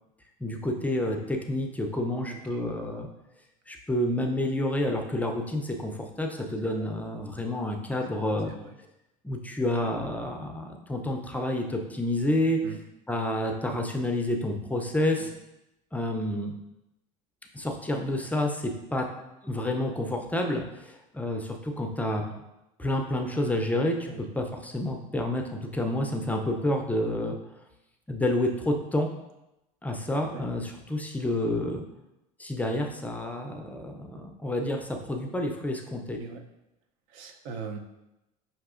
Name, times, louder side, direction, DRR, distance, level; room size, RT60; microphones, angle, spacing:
voice 1, 0.4-3.1 3.7-8.5 9.2-12.6 13.1-15.3 15.9-16.5 17.5-19.1 19.4-22.2 22.8-27.4 28.1-29.1 29.8-31.8 32.4-36.2, left 1 dB, 10° left, 2 dB, 0.4 m, -29 dB
voice 2, 2.3-2.6 6.8-6.9 8.5-8.8 12.6-12.8 15.2-15.3 22.3-22.4 24.1-24.2 30.3-30.4 36.2-36.4 37.1-37.8, right 5 dB, 70° right, 6 dB, 0.5 m, -40 dB
5.7 x 2.7 x 2.4 m, 0.93 s
supercardioid pair, 105°, 18 cm